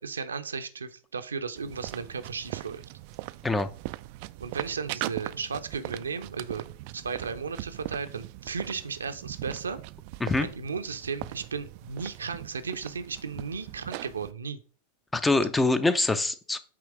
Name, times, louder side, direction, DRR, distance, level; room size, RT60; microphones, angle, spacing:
voice 1, 0.0-2.8 4.4-9.8 10.4-14.6, right 5 dB, 70° right, 9 dB, 0.7 m, -35 dB
sound 1, 1.6-14.3, right 19 dB, 45° right, 0.3 m, -40 dB
voice 2, 15.1-16.6, left 2 dB, 10° left, 13 dB, 0.6 m, -24 dB
8.6 x 3.3 x 4.8 m, 0.39 s
figure-of-eight pair, 90°, 0 cm